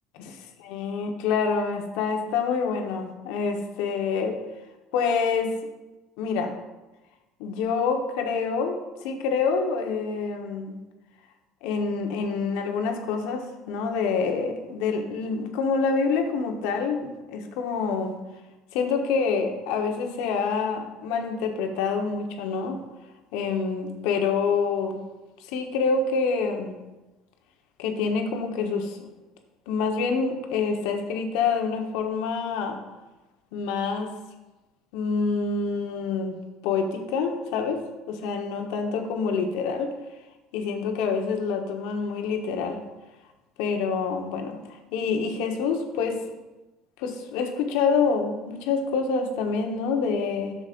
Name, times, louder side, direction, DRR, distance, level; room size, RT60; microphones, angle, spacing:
voice 1, 0.7-4.4 4.9-5.6 6.2-6.6 7.4-10.8 11.6-18.2 18.7-22.8 23.3-25.0 25.4-26.7 27.8-29.1 29.7-32.8 33.5-34.1 34.9-36.4 36.6-37.8 38.1-39.9 40.5-42.8 43.6-46.2 47.0-50.6, left 5 dB, 70° left, 4 dB, 1.1 m, -27 dB
13.0 x 6.2 x 2.6 m, 1.1 s
hypercardioid pair, 70°, 0 cm